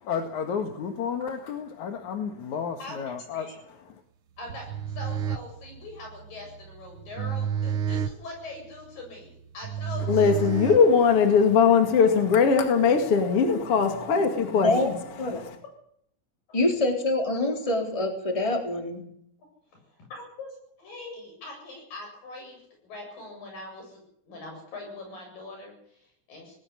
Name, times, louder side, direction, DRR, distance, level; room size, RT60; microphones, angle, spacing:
voice 1, 0.0-4.0, left 6 dB, 60° left, 3.0 m, -32 dB
voice 2, 2.8-3.5 4.4-10.5 16.5-16.6 18.6-18.7 20.1-22.6 22.8-24.0 24.3-26.6, left 2 dB, 85° left, 9.6 m, -42 dB
sound 1, 4.4-11.4, right 8 dB, 90° right, 1.1 m, -32 dB
voice 3, 10.1-15.0 15.3-15.5, left 6 dB, 45° left, 3.0 m, -20 dB
voice 4, 14.5-14.9 15.2-15.4 16.5-19.0, left 2 dB, 10° left, 3.5 m, -25 dB
19.0 x 18.5 x 8.4 m
omnidirectional pair, 3.9 m